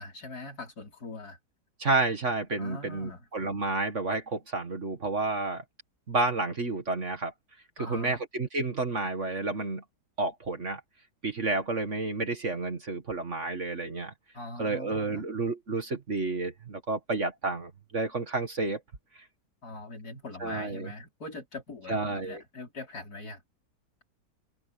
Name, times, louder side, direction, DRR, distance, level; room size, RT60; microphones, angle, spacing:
voice 1, 0.0-1.4 2.6-3.3 7.8-8.2 14.3-15.3 19.6-23.4, left 2 dB, 60° left, 5.6 m, -42 dB
voice 2, 1.8-5.6 6.1-7.3 7.8-9.8 10.2-10.8 11.2-14.1 14.6-18.8 20.4-20.9 21.9-22.4, right 3 dB, 45° right, 2.1 m, -30 dB
omnidirectional pair, 1.9 m